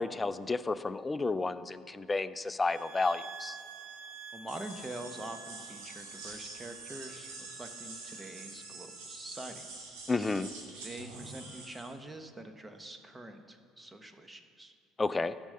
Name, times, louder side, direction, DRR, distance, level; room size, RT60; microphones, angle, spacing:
voice 1, 0.0-3.6 10.1-10.5 15.0-15.3, left 3 dB, 20° left, 14 dB, 0.4 m, -31 dB
sound 1, 2.6-8.5, right 6 dB, 65° right, 1.1 m, -49 dB
voice 2, 4.3-9.7 10.8-14.7, right 1 dB, 15° right, 7 dB, 1.0 m, -45 dB
sound 2, 4.5-11.9, right 3 dB, 80° right, 2.5 m, -46 dB
13.0 x 5.3 x 6.5 m, 2.2 s
supercardioid pair, 75°, 0 cm